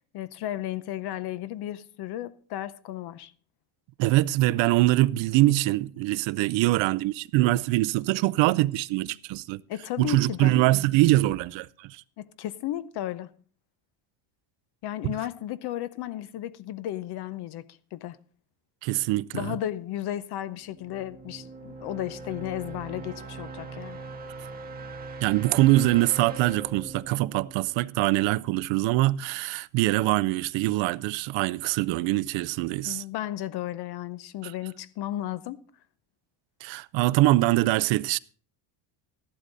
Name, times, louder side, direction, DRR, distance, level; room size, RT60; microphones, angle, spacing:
voice 1, 0.1-3.3 9.7-10.5 12.2-13.3 14.8-17.6 17.9-18.2 19.3-24.0 32.8-35.6, left 13 dB, 50° left, 0.7 m, -34 dB
voice 2, 4.0-9.6 10.0-12.0 15.0-15.1 18.8-19.6 25.2-33.0 34.4-34.5 36.6-38.2, right 17 dB, 65° right, 0.6 m, -23 dB
sound 1, 20.7-28.5, right 4 dB, 20° right, 1.6 m, -41 dB
14.0 x 11.5 x 3.9 m
cardioid pair, 165°, 50 cm